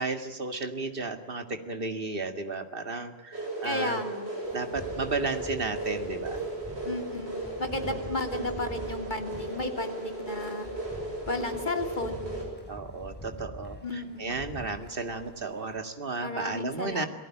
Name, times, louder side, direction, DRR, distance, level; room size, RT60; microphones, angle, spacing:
voice 1, 0.0-4.0 4.5-6.4 8.3-8.5 12.7-17.1, right 3 dB, 55° right, 8 dB, 2.3 m, -33 dB
sound 1, 3.3-12.5, right 2 dB, 75° right, 7.7 m, -36 dB
voice 2, 3.6-4.2 6.8-7.3 7.6-10.7 11.3-12.3 13.8-14.3 16.2-17.1, left 2 dB, 45° left, 6 dB, 2.9 m, -33 dB
sound 2, 4.4-15.8, equal, 10° left, 6.5 m, -45 dB
28.0 x 18.5 x 9.0 m, 0.96 s
omnidirectional pair, 1.1 m